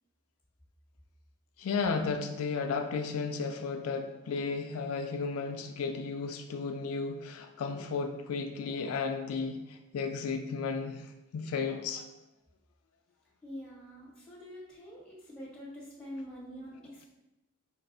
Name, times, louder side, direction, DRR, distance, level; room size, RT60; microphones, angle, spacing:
voice 1, 1.6-11.0 11.3-12.0, left 4 dB, 75° left, 5 dB, 0.3 m, -34 dB
voice 2, 13.4-17.1, equal, 5° left, -6 dB, 1.2 m, -45 dB
4.3 x 2.3 x 3.8 m, 0.95 s
head